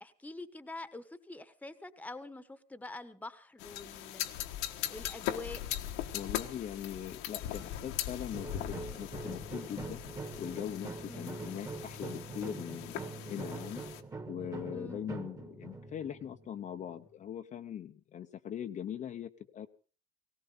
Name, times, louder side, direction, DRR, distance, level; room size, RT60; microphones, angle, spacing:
voice 1, 0.0-4.3 4.9-5.6 11.1-11.3 14.7-15.0, left 2 dB, 5° left, 12 dB, 1.3 m, -46 dB
sound 1, 3.6-14.0, left 12 dB, 75° left, 1.5 m, -40 dB
voice 2, 6.1-10.0 10.4-13.8 14.3-19.7, left 9 dB, 35° left, 5 dB, 0.9 m, -41 dB
sound 2, 8.3-17.1, right 3 dB, 15° right, 1.7 m, -44 dB
18.5 x 17.5 x 4.0 m, 0.38 s
supercardioid pair, 115°, 21 cm